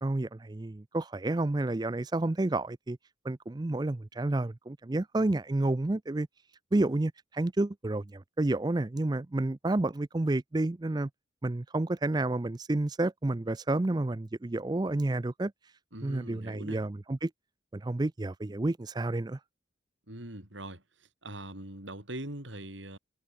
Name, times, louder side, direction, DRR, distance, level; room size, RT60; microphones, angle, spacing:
voice 1, 0.0-3.0 3.2-6.3 6.7-11.1 11.4-15.5 16.0-17.3 17.7-19.4, right 2 dB, 20° right, 0.4 m, -30 dB
voice 2, 15.9-16.8 20.1-20.8 21.2-23.0, right 1 dB, 70° right, 6.4 m, -42 dB
head